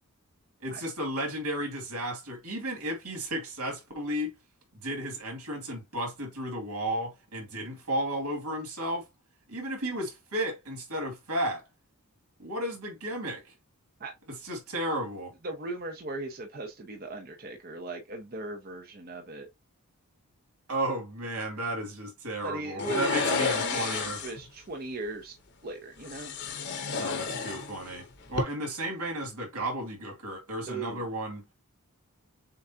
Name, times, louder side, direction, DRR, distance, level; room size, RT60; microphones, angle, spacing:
voice 1, 0.6-4.3 4.7-9.1 9.5-11.6 12.4-13.5 14.3-15.3 20.7-24.2 27.0-31.4, right 1 dB, 85° right, 2.4 m, -33 dB
voice 2, 15.4-19.5 22.4-25.3 25.6-26.4 30.7-31.1, right 2 dB, 40° right, 0.8 m, -38 dB
sound 1, 22.8-24.4 26.0-28.0 28.3-28.4, left 5 dB, 50° left, 0.9 m, -31 dB
6.9 x 2.5 x 2.8 m
head